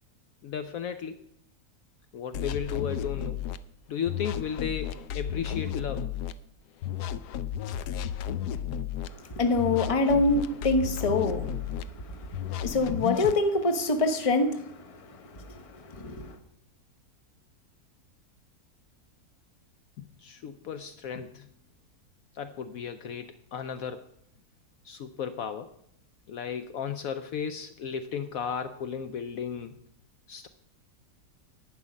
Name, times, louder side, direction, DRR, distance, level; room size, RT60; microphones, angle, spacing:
voice 1, 0.4-1.2 2.1-3.5 3.9-6.1 6.9-7.0 20.0-21.5 22.3-24.1 24.8-25.7 26.3-29.8 30.3-30.5, left 7 dB, 70° left, 10 dB, 1.0 m, -35 dB
sound 1, 2.3-3.6 4.1-6.3 6.8-9.1 9.6-11.8 12.3-13.4, left 9 dB, 85° left, 1.2 m, -33 dB
voice 2, 9.1-12.3 12.6-16.4, left 2 dB, 25° left, 7 dB, 0.9 m, -26 dB
11.0 x 8.6 x 5.2 m, 0.72 s
omnidirectional pair, 1.7 m